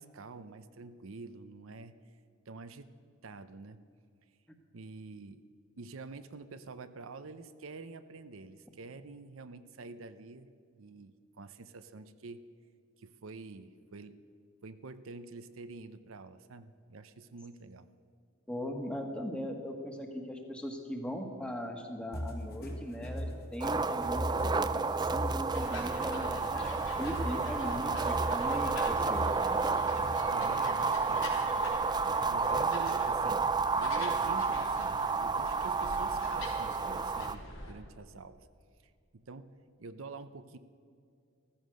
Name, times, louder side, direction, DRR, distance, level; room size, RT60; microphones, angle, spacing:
voice 1, 0.0-1.9 2.5-2.9 3.2-3.8 4.7-5.4 5.8-12.5 13.0-14.2 14.6-17.9 30.3-32.0 32.3-38.5 39.1-39.5 39.8-40.6, right 3 dB, 70° right, 11 dB, 0.7 m, -47 dB
voice 2, 18.5-29.6, equal, 5° left, 3 dB, 1.6 m, -39 dB
sound 1, 22.1-30.3, equal, 45° left, 2.6 m, -40 dB
sound 2, 23.6-37.4, right 4 dB, 20° right, 0.4 m, -31 dB
sound 3, 25.5-37.7, left 2 dB, 75° left, 3.7 m, -44 dB
15.0 x 14.5 x 6.4 m, 2.3 s
head